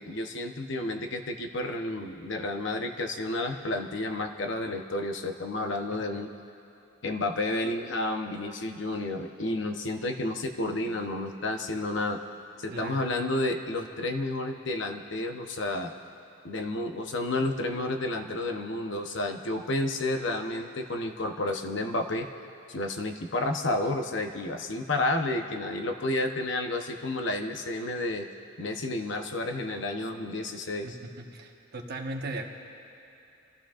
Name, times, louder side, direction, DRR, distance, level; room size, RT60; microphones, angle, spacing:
voice 1, 0.0-6.3 7.0-12.2 12.6-15.9 16.4-22.3 22.7-28.3 28.6-30.9, left 2 dB, 65° left, 5 dB, 0.9 m, -31 dB
voice 2, 12.7-13.1 30.8-32.4, right 2 dB, 50° right, 2 dB, 1.2 m, -38 dB
29.0 x 14.0 x 2.5 m, 2.8 s
head